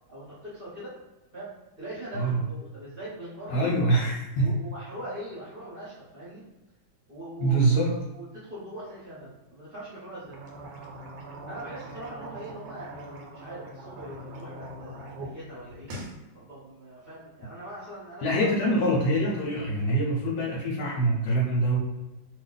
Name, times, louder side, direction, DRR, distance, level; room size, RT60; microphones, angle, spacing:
voice 1, 0.1-0.9 1.3-3.9 4.4-6.5 7.1-10.4 11.5-15.9 16.3-18.5, right 1 dB, 40° right, -8 dB, 0.9 m, -41 dB
voice 2, 3.5-4.5 7.4-7.9 18.2-21.8, right 1 dB, 65° left, -3 dB, 1.1 m, -24 dB
sound 1, 10.2-15.3 15.6-16.2, right 1 dB, 80° right, 1.3 m, -42 dB
2.7 x 2.5 x 3.8 m, 1.1 s
omnidirectional pair, 2.0 m